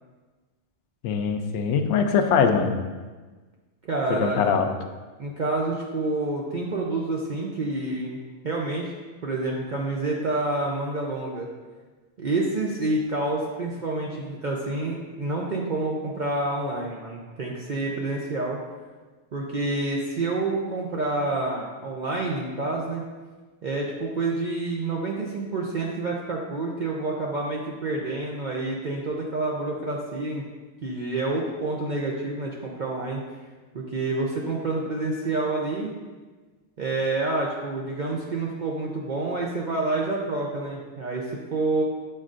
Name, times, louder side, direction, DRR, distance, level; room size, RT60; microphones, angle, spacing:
voice 1, 1.0-2.7 4.2-4.7, left 6 dB, 65° left, 5 dB, 0.8 m, -22 dB
voice 2, 3.8-4.4 5.2-8.2 8.4-8.9 9.2-11.5 12.2-18.6 19.3-23.0 23.6-30.4 30.8-33.2 33.7-35.9 36.8-41.8, right 2 dB, 65° right, -2 dB, 0.4 m, -28 dB
7.4 x 5.2 x 2.5 m, 1.3 s
omnidirectional pair, 1.5 m